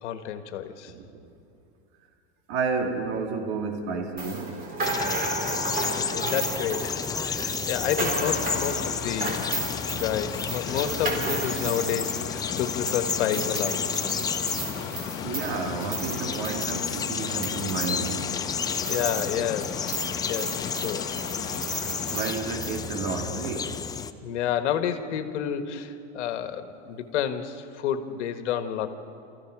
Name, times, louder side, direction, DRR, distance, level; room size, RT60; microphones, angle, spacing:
voice 1, 0.0-0.9 6.1-9.5 9.9-13.8 18.9-19.8 20.3-21.1 24.2-28.9, left 9 dB, 80° left, 9 dB, 1.6 m, -30 dB
voice 2, 2.5-4.6 15.2-18.3 22.1-23.8, right 5 dB, 55° right, 3 dB, 2.6 m, -31 dB
sound 1, 4.2-19.4 19.6-22.8, right 2 dB, 25° right, 4.0 m, -33 dB
sound 2, 4.8-24.1, left 6 dB, 10° left, 0.4 m, -32 dB
sound 3, 8.1-22.3, left 9 dB, 50° left, 1.5 m, -38 dB
29.5 x 15.0 x 6.1 m, 2.6 s
supercardioid pair, 135°, 35 cm